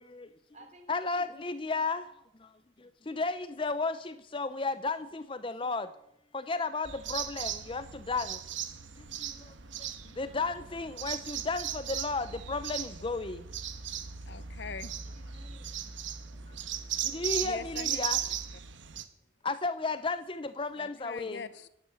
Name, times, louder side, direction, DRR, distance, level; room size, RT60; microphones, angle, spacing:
voice 1, 0.0-0.3 0.9-2.1 2.4-5.9 6.3-8.4 9.0-13.5 16.5-16.6 17.0-18.2 19.4-21.4, left 3 dB, 25° left, 0.5 m, -34 dB
voice 2, 0.5-1.5 3.1-3.4 10.0-10.4 15.1-15.7 16.1-17.3, right 1 dB, 35° right, 3.7 m, -59 dB
sound 1, 6.8-19.0, right 9 dB, 80° right, 1.2 m, -37 dB
voice 3, 14.2-15.4 17.4-18.1 20.7-21.7, left 5 dB, 65° left, 0.8 m, -43 dB
12.5 x 10.5 x 8.4 m
head